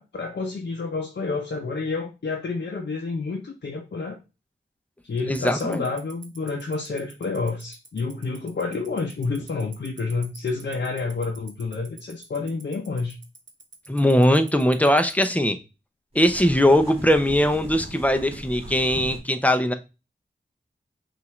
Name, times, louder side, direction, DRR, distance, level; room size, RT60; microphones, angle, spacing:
voice 1, 0.0-4.2 5.0-13.2, left 4 dB, 60° left, 1 dB, 0.7 m, -29 dB
voice 2, 5.3-5.8 13.9-15.6 16.1-19.7, equal, 10° left, 7 dB, 0.7 m, -20 dB
Tick-tock, 5.3-15.2, right 4 dB, 75° right, 0.9 m, -43 dB
Paddle boat on water, 16.1-19.2, right 1 dB, 30° right, 2.2 m, -39 dB
5.5 x 2.5 x 3.1 m, 0.28 s
cardioid pair, 45°, 19 cm